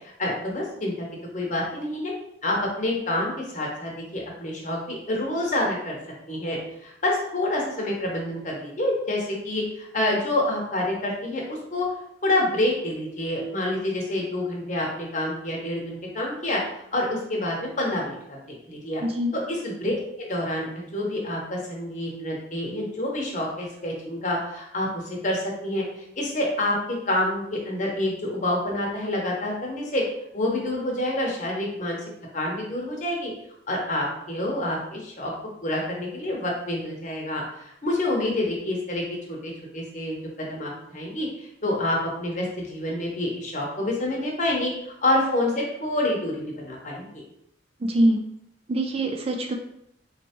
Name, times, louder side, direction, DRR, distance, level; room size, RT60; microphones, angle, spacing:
voice 1, 0.2-1.1 1.3-2.1 2.4-6.0 6.3-6.6 6.8-11.9 12.2-16.6 16.9-19.0 19.3-24.9 25.2-25.8 26.2-26.8 27.1-30.0 30.3-32.0 32.3-33.3 33.7-35.3 35.6-44.7 45.0-47.1, left 1 dB, 40° left, -1 dB, 1.0 m, -27 dB
voice 2, 19.0-19.4 47.8-48.3 48.7-49.6, right 1 dB, 30° right, 4 dB, 0.3 m, -23 dB
4.2 x 3.2 x 2.9 m, 0.77 s
head